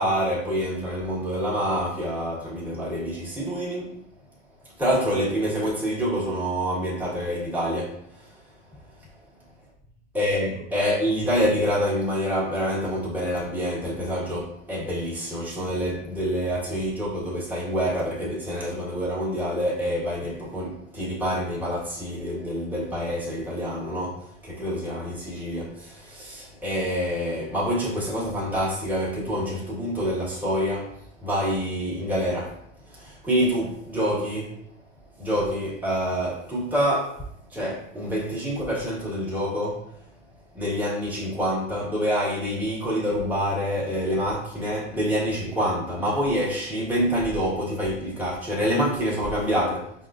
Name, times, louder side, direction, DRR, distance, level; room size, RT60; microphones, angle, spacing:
voice 1, 0.0-4.0 4.8-8.3 10.1-32.6 32.9-34.7 35.2-37.2 37.5-39.9 40.5-49.9, equal, 5° right, -8 dB, 1.5 m, -27 dB
5.0 x 2.6 x 2.5 m, 0.73 s
supercardioid pair, 105°, 39 cm